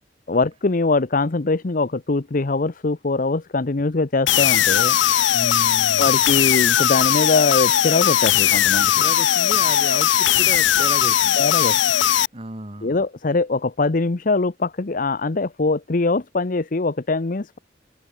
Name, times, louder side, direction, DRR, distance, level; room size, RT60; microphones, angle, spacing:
voice 1, 0.3-5.0 6.0-8.9 11.4-11.7 12.8-17.6, left 3 dB, 45° left, 0.8 m, -22 dB
sound 1, 4.3-12.3, left 10 dB, 80° left, 0.6 m, -18 dB
voice 2, 5.3-6.2 9.0-11.4 12.3-13.0, right 1 dB, 30° right, 2.6 m, -33 dB
open air
head